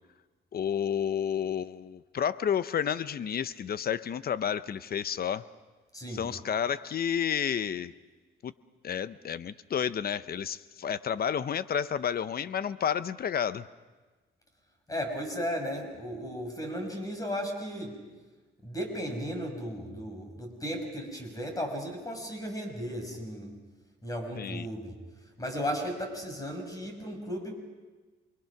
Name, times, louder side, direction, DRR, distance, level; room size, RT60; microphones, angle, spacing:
voice 1, 0.5-5.4 6.1-7.9 8.4-8.5 8.8-13.6 24.4-24.7, left 8 dB, 50° left, 15 dB, 0.8 m, -31 dB
voice 2, 5.9-6.2 14.9-18.0 18.6-23.5 24.0-24.9 25.4-27.5, equal, 15° left, 4 dB, 5.7 m, -35 dB
27.5 x 22.0 x 6.0 m, 1.3 s
cardioid pair, 90°, 20 cm